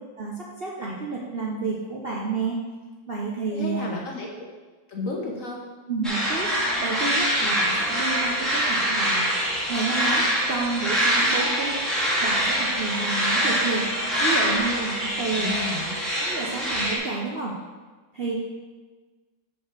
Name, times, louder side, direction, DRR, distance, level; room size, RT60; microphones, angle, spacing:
voice 1, 0.2-2.6 3.1-3.9 5.9-9.3 9.7-11.8 12.2-13.9 14.2-15.6 16.1-17.5 18.1-18.3, right 4 dB, 45° right, -4 dB, 0.8 m, -30 dB
voice 2, 3.5-4.5 4.9-5.6 15.3-15.9, left 2 dB, 50° left, 0 dB, 1.1 m, -32 dB
sound 1, 6.0-17.0, equal, ahead, 2.0 m, -24 dB
7.3 x 4.6 x 6.1 m, 1.3 s
omnidirectional pair, 2.1 m